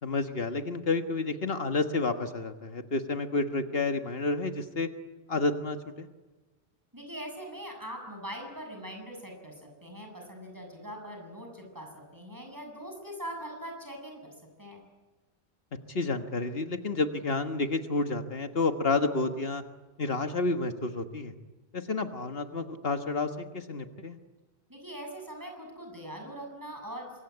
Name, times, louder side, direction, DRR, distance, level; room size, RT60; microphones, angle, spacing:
voice 1, 0.0-4.9 5.3-6.1 15.9-19.6 20.0-21.3 21.7-24.2, left 3 dB, 70° left, 7 dB, 1.7 m, -30 dB
voice 2, 6.9-14.3 14.6-14.8 24.7-27.1, equal, 20° right, 2 dB, 7.4 m, -42 dB
25.5 x 23.0 x 9.7 m, 1.2 s
omnidirectional pair, 1.0 m